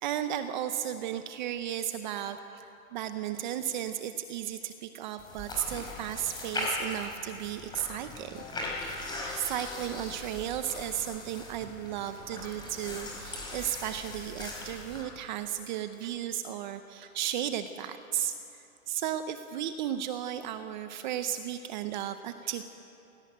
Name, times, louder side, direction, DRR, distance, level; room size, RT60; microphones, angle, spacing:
voice 1, 0.0-8.4 8.7-22.6, right 10 dB, 35° right, 9 dB, 0.7 m, -35 dB
sound 1, 5.2-15.0, left 2 dB, 10° left, 4.8 m, -39 dB
sound 2, 8.2-10.8, left 5 dB, 65° left, 5.8 m, -50 dB
24.5 x 17.5 x 9.2 m, 2.9 s
hypercardioid pair, 160°, 43 cm